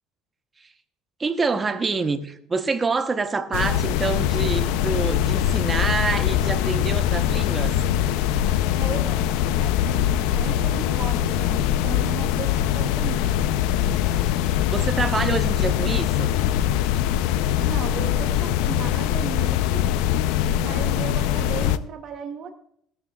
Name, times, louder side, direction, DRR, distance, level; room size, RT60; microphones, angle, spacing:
voice 1, 1.2-7.8 14.2-14.4 14.7-16.3, right 4 dB, 15° right, 0.9 m, -26 dB
sound 1, 3.5-21.8, left 11 dB, 90° left, 0.6 m, -22 dB
voice 2, 8.7-13.3 17.6-19.9 20.6-22.5, right 7 dB, 40° right, 1.0 m, -36 dB
16.0 x 13.0 x 2.4 m
cardioid pair, 165°, 0 cm